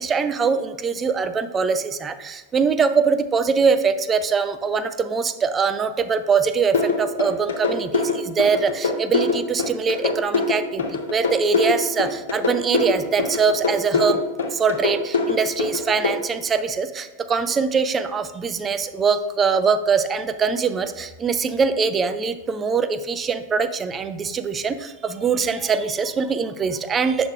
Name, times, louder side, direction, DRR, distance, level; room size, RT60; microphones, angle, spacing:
voice 1, 0.0-14.2 14.5-27.3, right 5 dB, 20° right, 11 dB, 0.4 m, -22 dB
sound 1, 6.7-16.1, left 4 dB, 65° left, 0.6 m, -23 dB
7.0 x 6.4 x 2.4 m, 1.1 s
figure-of-eight pair, 90°, 0 cm